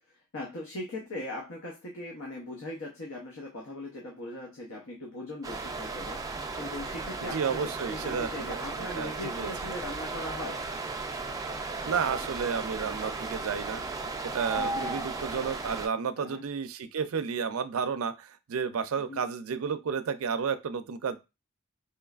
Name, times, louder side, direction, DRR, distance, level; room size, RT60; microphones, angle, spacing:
voice 1, 0.1-10.6 14.5-15.0 16.2-16.4 19.1-19.2, left 1 dB, 75° left, -1 dB, 0.8 m, -40 dB
sound 1, 5.4-15.9, right 3 dB, 15° right, 0.4 m, -35 dB
voice 2, 7.2-9.1 9.4-9.5 11.9-13.8 14.2-21.2, right 6 dB, 80° right, 11 dB, 0.4 m, -32 dB
4.5 x 3.1 x 2.4 m, 0.26 s
head